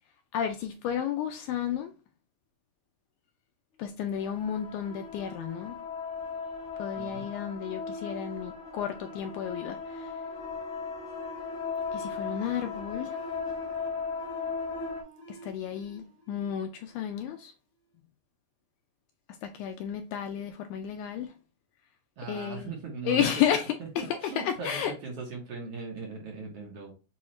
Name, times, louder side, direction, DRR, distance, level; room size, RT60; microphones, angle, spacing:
voice 1, 0.3-1.9 3.8-5.8 6.8-10.1 11.9-13.2 15.3-16.0 16.3-17.5 19.4-21.3 22.3-22.7 23.1-23.6 24.4-24.9, left 9 dB, 80° left, 1.8 m, -32 dB
sound 1, 4.1-15.0, left 5 dB, 55° left, 0.7 m, -37 dB
voice 2, 6.9-7.3 22.2-23.5 23.8-26.9, right 4 dB, 65° right, 1.5 m, -39 dB
sound 2, 10.2-17.5, right 2 dB, 20° left, 0.4 m, -48 dB
7.0 x 2.3 x 3.0 m
omnidirectional pair, 3.8 m